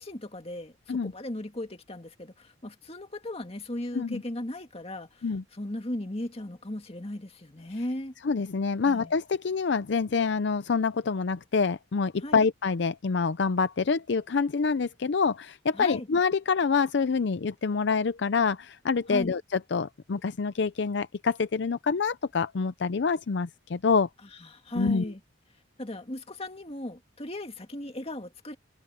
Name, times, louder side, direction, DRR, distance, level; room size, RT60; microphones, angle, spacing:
voice 1, 0.0-8.1 8.9-9.1 12.2-12.4 15.7-16.1 19.1-19.3 24.4-25.2 25.8-28.6, left 1 dB, 30° left, 2.0 m, -37 dB
voice 2, 8.2-24.1 24.8-25.1, left 5 dB, 60° left, 0.5 m, -26 dB
head